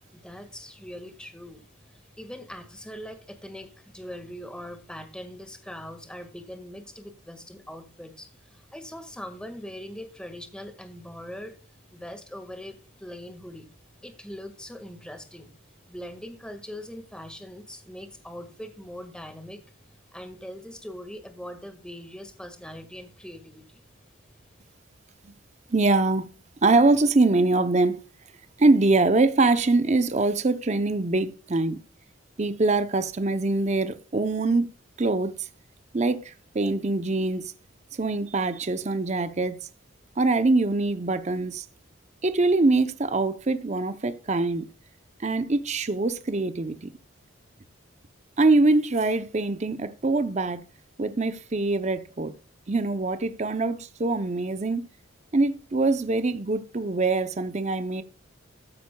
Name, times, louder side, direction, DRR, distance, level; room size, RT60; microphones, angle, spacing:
voice 1, 0.1-11.6 11.9-13.7 14.0-15.5 15.9-19.6 20.1-23.8, equal, 5° left, 1.6 m, -41 dB
voice 2, 25.7-26.3 26.6-28.0 28.6-31.8 32.4-34.7 35.0-35.5 35.9-37.5 37.9-39.6 40.2-41.6 42.2-44.7 45.2-46.9 48.4-50.6 51.0-52.3 52.7-54.8 55.3-58.0, right 3 dB, 35° right, 0.6 m, -23 dB
13.5 x 9.2 x 2.3 m
head